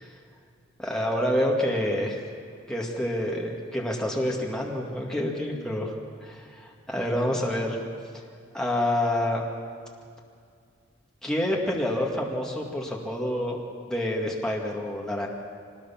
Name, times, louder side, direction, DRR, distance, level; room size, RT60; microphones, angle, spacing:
voice 1, 0.8-2.2 2.7-5.9 6.2-7.8 8.5-9.4 11.2-13.6 13.9-15.3, left 1 dB, 5° left, -3 dB, 2.1 m, -27 dB
24.0 x 20.5 x 5.9 m, 2.2 s
head